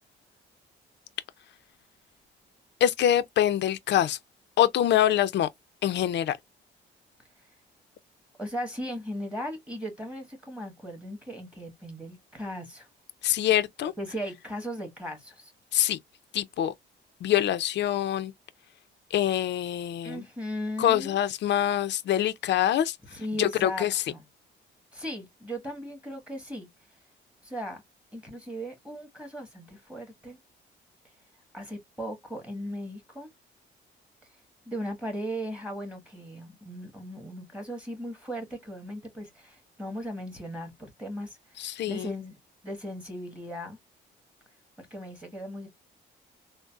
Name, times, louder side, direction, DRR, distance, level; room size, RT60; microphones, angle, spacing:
voice 1, 2.8-4.2 4.6-5.5 5.8-6.4 13.2-13.9 15.7-16.0 16.3-16.7 17.2-18.3 19.1-20.2 20.8-23.0 23.4-24.0 41.6-42.1, left 11 dB, 60° left, 0.5 m, -25 dB
voice 2, 8.4-12.9 13.8-15.5 20.0-21.2 23.1-24.2 24.9-26.7 27.4-27.8 28.1-30.4 31.5-33.3 34.6-42.4 42.6-43.8 44.8-45.7, equal, 5° right, 1.5 m, -37 dB
3.8 x 2.1 x 2.3 m
cardioid pair, 90°, 20 cm